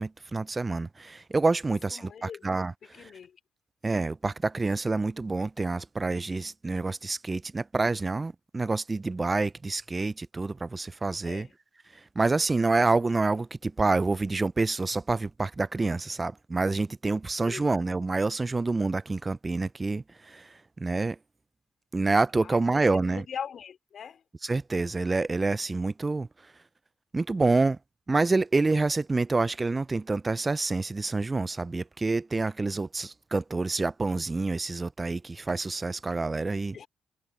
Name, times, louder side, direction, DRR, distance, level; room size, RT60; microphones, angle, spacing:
voice 1, 0.0-3.1 3.8-11.5 12.2-21.2 21.9-23.2 24.4-26.3 27.1-27.8 28.1-36.8, right 3 dB, 25° right, 0.3 m, -27 dB
voice 2, 1.6-2.4 2.9-3.4 11.2-11.5 17.5-17.7 22.4-24.2 36.7-36.9, left 7 dB, 55° left, 4.0 m, -41 dB
cardioid pair, 90°, 0 cm